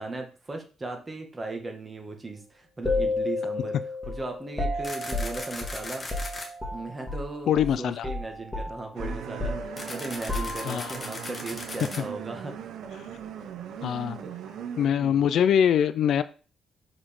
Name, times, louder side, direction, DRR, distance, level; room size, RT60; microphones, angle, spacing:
voice 1, 0.0-3.8 4.1-6.1 6.7-12.5 14.2-14.3 15.0-15.3, right 2 dB, 25° right, 3 dB, 1.7 m, -37 dB
sound 1, 2.8-7.3 7.6-7.8 8.0-11.0, left 2 dB, 10° left, 2.0 m, -32 dB
sound 2, 4.8-6.5 9.8-12.0, left 2 dB, 25° left, 1.6 m, -38 dB
voice 2, 7.5-8.1 10.6-11.0 13.8-14.2 14.8-16.2, left 9 dB, 70° left, 14 dB, 0.4 m, -23 dB
sound 3, 9.0-14.9, right 8 dB, 80° right, 0.8 m, -39 dB
6.1 x 5.1 x 3.7 m, 0.37 s
cardioid pair, 90°, 0 cm